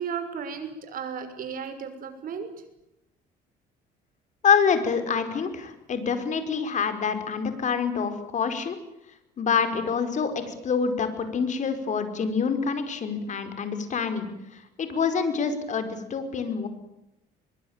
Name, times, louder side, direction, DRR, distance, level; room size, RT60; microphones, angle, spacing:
voice 1, 0.0-2.5, right 7 dB, 55° right, 8 dB, 6.2 m, -34 dB
voice 2, 4.4-8.8 9.4-16.7, left 6 dB, 45° left, 8 dB, 5.2 m, -26 dB
23.5 x 23.0 x 9.0 m, 0.88 s
cardioid pair, 110°, 17 cm